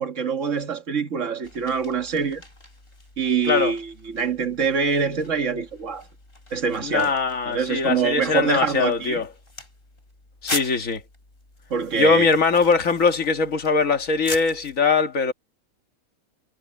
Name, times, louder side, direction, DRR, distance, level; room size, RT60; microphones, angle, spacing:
voice 1, 0.0-2.4 3.2-6.1 6.5-7.1 7.5-9.2 11.7-12.3, right 6 dB, 60° right, 1.9 m, -25 dB
sound 1, 1.4-14.8, left 2 dB, 40° left, 4.5 m, -40 dB
voice 2, 6.8-9.3 10.4-11.0 12.0-15.3, left 4 dB, 65° left, 2.1 m, -21 dB
omnidirectional pair, 1.5 m